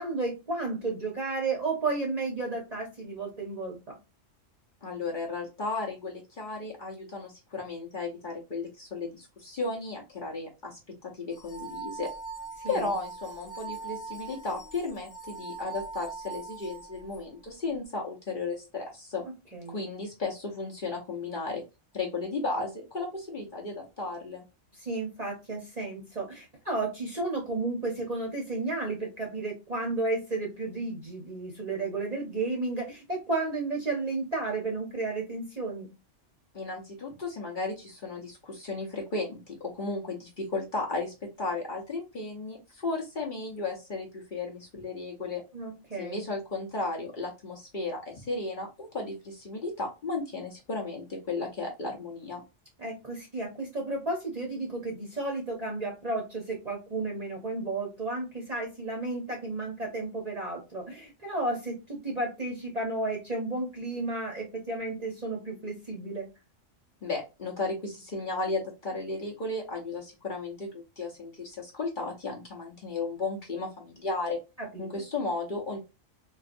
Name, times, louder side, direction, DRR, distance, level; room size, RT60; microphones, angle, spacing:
voice 1, 0.0-4.0 12.6-12.9 19.5-19.8 24.7-35.9 45.5-46.3 52.8-66.3 74.6-74.9, right 2 dB, 40° right, 0 dB, 0.7 m, -33 dB
voice 2, 4.8-12.1 12.6-19.2 19.7-21.6 21.9-24.4 36.5-45.4 46.0-52.4 67.0-74.4 74.8-75.8, left 3 dB, 45° left, -1 dB, 0.8 m, -34 dB
sound 1, 11.3-17.2, right 4 dB, 25° left, 0.5 m, -41 dB
3.8 x 2.4 x 2.5 m, 0.27 s
omnidirectional pair, 1.3 m